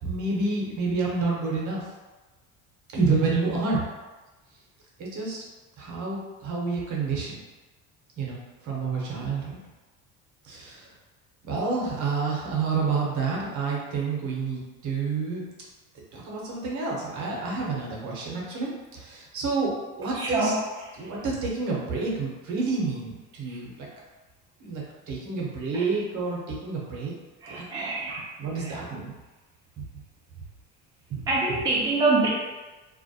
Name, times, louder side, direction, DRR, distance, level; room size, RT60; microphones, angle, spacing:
voice 1, 0.0-1.9 2.9-3.9 5.0-5.4 5.8-7.4 8.2-9.6 10.4-10.9 11.4-15.4 16.1-20.5 21.0-23.9 24.6-27.1 27.5-27.6 28.1-29.1 29.8-29.9 31.1-31.3, right 4 dB, 50° right, -3 dB, 0.9 m, -29 dB
voice 2, 20.1-20.6 20.9-21.2 23.4-23.6 25.7-25.9 27.4-28.3 28.5-28.7 31.3-32.3, right 3 dB, 10° right, -5 dB, 0.5 m, -26 dB
2.4 x 2.1 x 2.7 m, 1.2 s
supercardioid pair, 85°, 37 cm